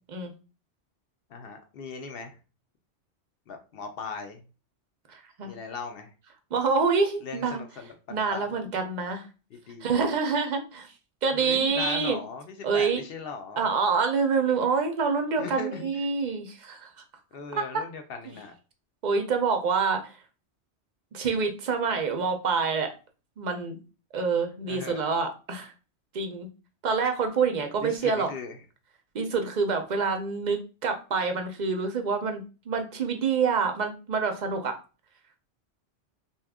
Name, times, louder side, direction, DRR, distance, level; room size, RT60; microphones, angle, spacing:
voice 1, 1.3-2.4 3.5-4.4 5.4-6.1 7.2-8.5 9.7-9.9 11.3-13.7 15.4-15.9 17.3-18.5 24.7-25.1 27.8-28.6, left 4 dB, 60° left, 6 dB, 0.7 m, -38 dB
voice 2, 5.1-5.5 6.5-7.6 8.1-9.3 9.8-10.9 11.2-12.2 12.6-13.0 13.6-16.9 17.5-17.8 19.0-20.2 21.1-22.9 23.4-23.8 24.1-25.7 26.1-26.5 26.8-28.3 29.1-34.8, right 5 dB, 55° right, 5 dB, 0.5 m, -27 dB
2.8 x 2.3 x 3.4 m, 0.33 s
omnidirectional pair, 1.2 m